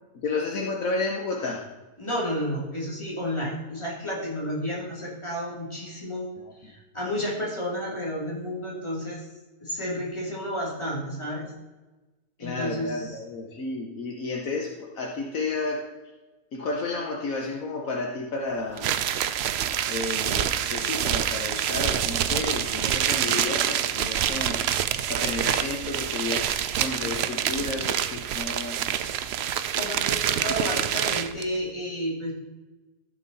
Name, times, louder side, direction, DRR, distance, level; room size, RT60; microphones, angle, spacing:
voice 1, 0.1-1.6 6.4-6.5 12.4-15.8 16.5-19.0 19.9-28.8, left 3 dB, 65° left, 1 dB, 1.4 m, -32 dB
voice 2, 2.0-6.3 6.6-9.2 9.6-11.4 12.4-13.2 29.7-32.3, equal, 20° left, -4 dB, 2.8 m, -31 dB
sound 1, 18.8-31.4, right 10 dB, 70° right, 0.6 m, -26 dB
13.5 x 6.7 x 4.1 m, 1.1 s
omnidirectional pair, 1.6 m